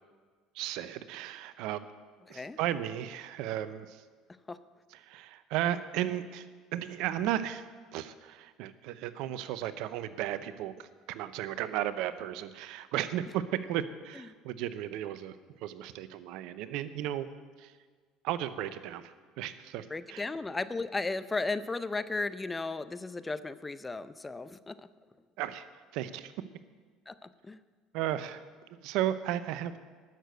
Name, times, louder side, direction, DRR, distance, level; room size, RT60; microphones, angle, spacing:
voice 1, 0.5-1.9 2.3-4.0 4.9-6.5 6.7-17.3 17.6-17.7 18.2-20.3 25.4-25.6 25.9-26.3 27.9-28.4 28.7-29.8, right 12 dB, 70° right, 14 dB, 0.6 m, -35 dB
voice 2, 2.3-2.6 4.5-4.6 19.9-24.9 27.1-27.6, left 3 dB, 20° left, 14 dB, 0.6 m, -35 dB
12.0 x 6.7 x 7.9 m, 1.5 s
hypercardioid pair, 75°, 0 cm